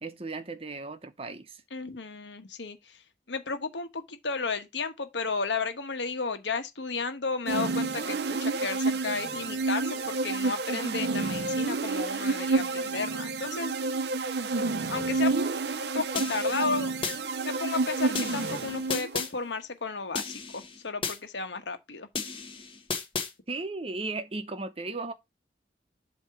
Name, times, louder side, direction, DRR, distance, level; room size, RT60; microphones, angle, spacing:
voice 1, 0.0-1.6 23.5-25.1, right 3 dB, 35° right, 0.8 m, -36 dB
voice 2, 1.7-13.7 14.9-15.3 15.8-16.9 17.4-22.1, left 4 dB, 85° left, 1.2 m, -33 dB
sound 1, 7.5-19.2, right 3 dB, 65° right, 0.6 m, -29 dB
sound 2, 16.2-17.2 18.1-19.3 20.1-21.2 22.1-23.3, left 5 dB, 30° left, 1.2 m, -34 dB
7.9 x 3.0 x 5.8 m
head